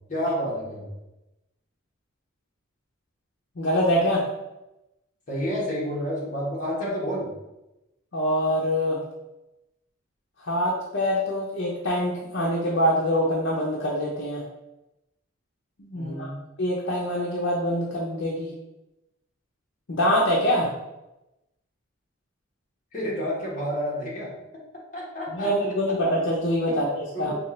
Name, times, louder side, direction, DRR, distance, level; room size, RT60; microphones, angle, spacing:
voice 1, 0.1-0.9 5.3-7.3 16.0-16.4 22.9-24.3 24.9-25.5 26.7-26.8 27.1-27.3, equal, 40° left, -5 dB, 1.2 m, -29 dB
voice 2, 3.6-4.2 8.1-9.0 10.4-14.4 15.8-16.3 16.6-18.5 19.9-20.7 25.3-27.3, equal, 65° left, -5 dB, 0.7 m, -24 dB
4.3 x 2.4 x 3.1 m, 0.94 s
head